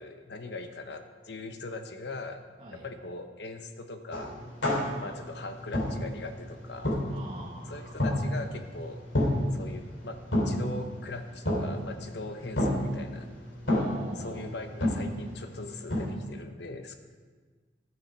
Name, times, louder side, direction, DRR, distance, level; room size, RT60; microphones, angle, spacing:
voice 1, 0.0-2.4 2.7-4.4 5.0-7.0 7.7-9.0 9.5-13.3 14.1-16.9, left 2 dB, 70° left, 7 dB, 0.9 m, -40 dB
sound 1, 4.1-16.0, left 1 dB, 90° left, 2.9 m, -31 dB
voice 2, 4.7-5.1 7.1-8.0 13.7-14.5, right 1 dB, 25° right, -5 dB, 1.7 m, -44 dB
12.5 x 7.1 x 5.5 m, 1.5 s
head